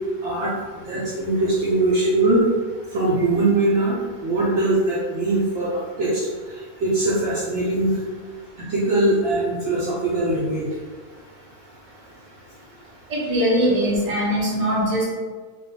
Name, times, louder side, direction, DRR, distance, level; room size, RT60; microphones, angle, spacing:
voice 1, 0.2-2.5 2.9-8.0 8.7-10.7, right 2 dB, 65° right, -7 dB, 0.8 m, -22 dB
voice 2, 13.1-15.0, equal, 35° right, -6 dB, 0.7 m, -21 dB
2.3 x 2.2 x 2.6 m, 1.5 s
omnidirectional pair, 1.4 m